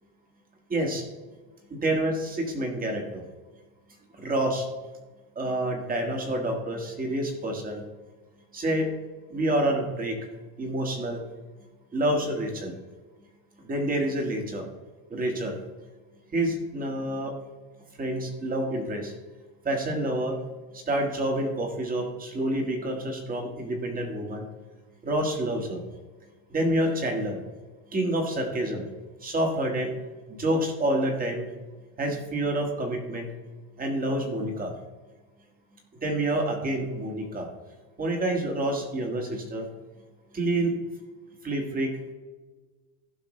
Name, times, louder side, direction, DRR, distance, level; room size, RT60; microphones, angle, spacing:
voice 1, 0.7-1.1 1.7-3.2 4.2-4.7 5.3-7.8 8.5-8.9 9.3-10.2 10.6-11.2 11.9-12.7 13.6-14.6 15.1-15.6 16.3-17.3 18.0-19.1 19.6-20.4 20.7-24.4 25.0-25.8 26.5-27.4 27.9-28.8 29.2-29.9 30.3-31.5 32.0-33.3 33.8-34.7 36.0-37.5 38.0-39.7 40.3-40.7 41.4-41.9, right 1 dB, 20° right, 2 dB, 1.7 m, -28 dB
15.5 x 5.8 x 3.2 m, 1.3 s
supercardioid pair, 150°, 45 cm